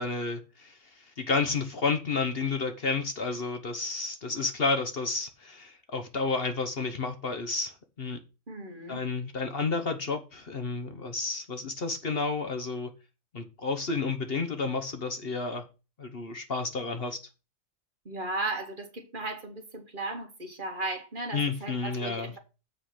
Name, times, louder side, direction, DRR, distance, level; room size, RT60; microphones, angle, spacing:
voice 1, 0.0-8.2 8.9-12.9 13.3-15.6 16.0-17.2 21.3-22.4, left 4 dB, 50° left, 1.2 m, -31 dB
voice 2, 8.5-9.0 18.1-22.4, right 2 dB, 40° right, 1.8 m, -36 dB
7.6 x 5.1 x 5.8 m
omnidirectional pair, 1.4 m